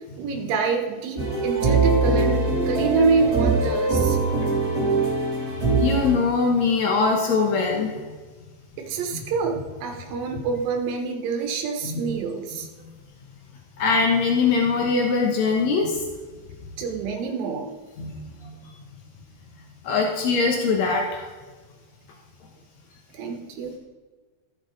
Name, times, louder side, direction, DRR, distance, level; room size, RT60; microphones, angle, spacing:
voice 1, 0.2-4.2 8.8-12.7 16.8-17.7 23.1-23.8, right 4 dB, 70° right, 2 dB, 2.8 m, -26 dB
Background Music, 1.2-6.1, right 3 dB, 25° right, 2.6 m, -22 dB
voice 2, 5.8-8.0 9.1-9.2 11.8-12.0 13.8-16.0 18.0-18.6 19.8-21.3, left 4 dB, 85° left, 1 dB, 1.6 m, -22 dB
14.0 x 7.3 x 3.9 m, 1.3 s
omnidirectional pair, 4.7 m